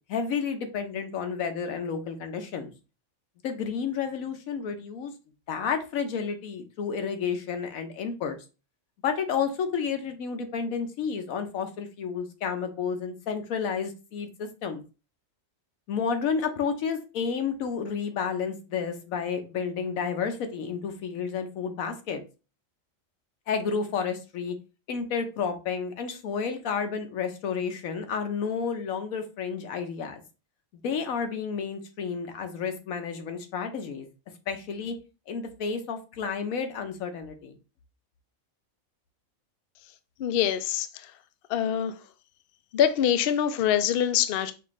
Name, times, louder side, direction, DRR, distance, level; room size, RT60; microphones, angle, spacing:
voice 1, 0.1-2.7 3.4-5.1 5.5-8.4 9.0-14.8 15.9-22.2 23.5-24.5 24.9-30.2 30.8-34.1 34.5-34.9 35.3-37.5, left 6 dB, 85° left, 1.2 m, -31 dB
voice 2, 40.2-40.9 41.5-41.9 42.7-44.5, left 9 dB, 65° left, 0.6 m, -24 dB
5.8 x 2.6 x 3.1 m
omnidirectional pair, 1.4 m